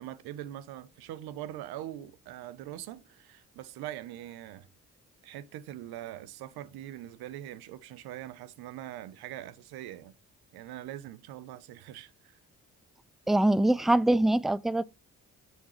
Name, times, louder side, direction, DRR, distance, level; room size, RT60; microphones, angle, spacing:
voice 1, 0.0-4.7 5.2-10.1 10.5-12.4, right 13 dB, 80° right, 0.7 m, -42 dB
voice 2, 13.3-14.8, right 1 dB, ahead, 0.3 m, -23 dB
7.3 x 6.9 x 3.1 m
hypercardioid pair, 45°, 38 cm